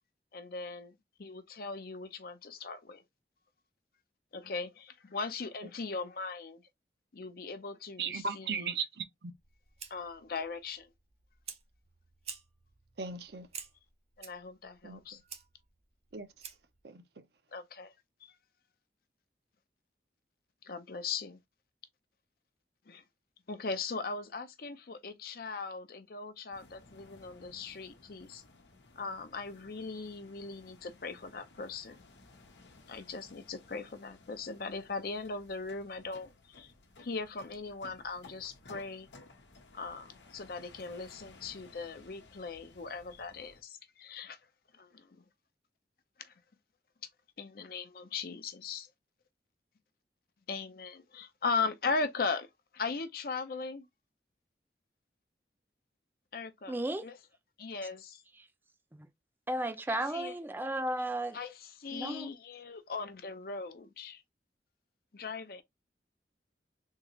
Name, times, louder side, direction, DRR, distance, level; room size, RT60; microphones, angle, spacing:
voice 1, 0.3-3.0 4.3-6.6 7.1-8.5 9.9-10.9 14.2-15.2 17.5-17.9 18.2-18.3 20.6-21.4 22.9-23.0 23.5-28.4 28.9-32.1 32.9-36.7 37.0-39.1 39.7-44.4 44.7-45.2 46.2-46.3 47.4-48.9 50.5-52.5 52.7-53.9 56.3-57.2 57.6-58.2 59.9-60.3 61.3-64.2 65.1-65.6, left 4 dB, 55° left, 0.6 m, -39 dB
voice 2, 8.0-9.3 13.0-13.5 14.8-15.2 16.1-16.3 16.8-17.2, right 5 dB, 70° right, 0.7 m, -37 dB
Fire, 9.3-16.8, right 7 dB, 35° right, 0.8 m, -50 dB
sound 1, 26.5-43.6, left 3 dB, 85° left, 0.9 m, -58 dB
voice 3, 56.7-57.1 58.9-59.1 59.5-61.4 61.9-62.3, right 1 dB, 10° right, 0.4 m, -34 dB
3.7 x 2.4 x 3.0 m
head